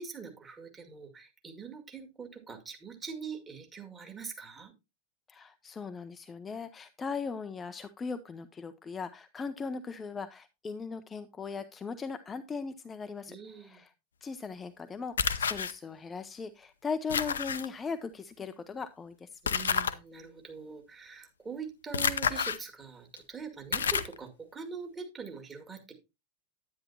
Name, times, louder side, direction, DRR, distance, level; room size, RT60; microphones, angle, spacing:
voice 1, 0.0-4.7 13.3-13.8 19.4-25.9, right 5 dB, 20° right, 4 dB, 2.1 m, -43 dB
voice 2, 5.3-13.4 13.6-13.9 14.2-19.4, left 5 dB, 15° left, 10 dB, 0.6 m, -38 dB
sound 1, 15.2-15.7 17.1-17.7 19.5-19.9 21.9-22.6 23.2-23.3 23.7-24.2, left 7 dB, 70° left, 0.6 m, -29 dB
10.0 x 9.6 x 2.8 m, 0.25 s
figure-of-eight pair, 90°, 0 cm